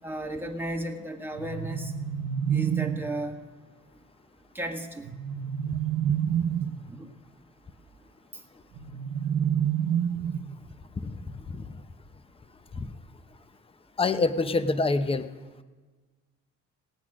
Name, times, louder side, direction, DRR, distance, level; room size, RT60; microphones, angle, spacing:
voice 1, 0.0-1.9 2.5-3.4 4.5-5.1 6.4-7.1 8.3-8.4 9.4-9.5, right 1 dB, 5° right, 0 dB, 1.7 m, -35 dB
sound 1, 1.3-3.2 5.0-6.9 8.7-10.7, right 9 dB, 75° right, 0.8 m, -28 dB
voice 2, 14.0-15.3, left 3 dB, 20° left, 11 dB, 0.7 m, -26 dB
18.0 x 8.6 x 6.1 m, 1.3 s
cardioid pair, 90°, 30 cm